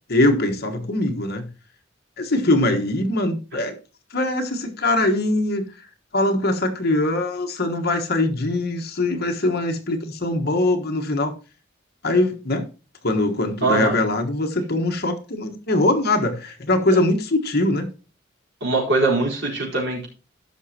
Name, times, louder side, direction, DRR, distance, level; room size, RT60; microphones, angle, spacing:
voice 1, 0.1-1.4 2.2-3.8 4.1-5.7 6.1-11.3 12.0-12.7 13.0-17.9, left 2 dB, 55° left, 1.4 m, -22 dB
voice 2, 13.6-13.9 18.6-20.1, right 3 dB, 65° right, 4.2 m, -21 dB
15.0 x 6.1 x 2.9 m
head